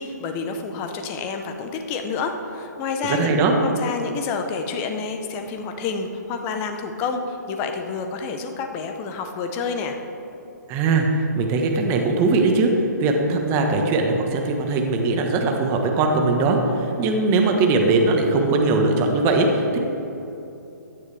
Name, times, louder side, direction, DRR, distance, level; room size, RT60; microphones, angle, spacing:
voice 1, 0.0-10.0, left 5 dB, 25° left, 5 dB, 1.0 m, -29 dB
voice 2, 3.1-3.6 10.7-12.7 13.0-19.8, right 3 dB, 25° right, 2 dB, 1.4 m, -20 dB
16.0 x 10.5 x 3.5 m, 3.0 s
figure-of-eight pair, 135°, 10 cm